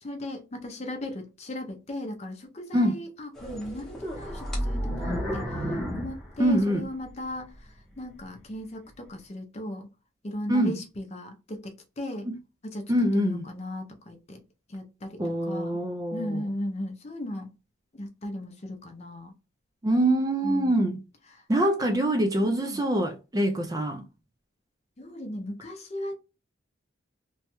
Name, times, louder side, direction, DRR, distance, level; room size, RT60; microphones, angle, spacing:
voice 1, 0.0-5.5 5.9-9.9 10.2-12.3 12.6-14.4 14.7-15.8 16.1-17.5 17.9-19.3 20.4-20.9 21.3-21.4 21.8-21.9 22.4-22.9 25.0-26.2, left 1 dB, 30° left, 0.6 m, -37 dB
sound 1, 3.3-7.1 7.6-7.7 8.3-8.4, equal, ahead, 0.9 m, -32 dB
voice 2, 6.4-6.9 10.5-10.7 12.3-12.4 12.9-13.4 15.2-16.4 19.8-21.0 21.5-24.0, right 1 dB, 20° right, 0.3 m, -24 dB
3.0 x 2.3 x 2.9 m
head